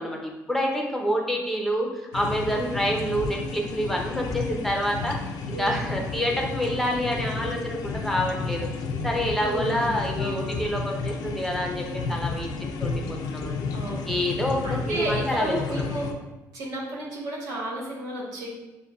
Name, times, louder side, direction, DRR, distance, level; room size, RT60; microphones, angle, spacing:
voice 1, 0.0-5.2 5.6-8.7 9.0-13.0 13.3-13.6 14.1-15.8, equal, 5° left, 0 dB, 0.8 m, -27 dB
sound 1, 2.1-16.1, left 4 dB, 80° left, 0.4 m, -32 dB
voice 2, 9.4-10.5 13.7-14.3 14.6-16.1 16.5-18.5, right 1 dB, 85° right, -5 dB, 1.2 m, -33 dB
6.5 x 2.3 x 2.5 m, 1.1 s
cardioid pair, 85°, 6 cm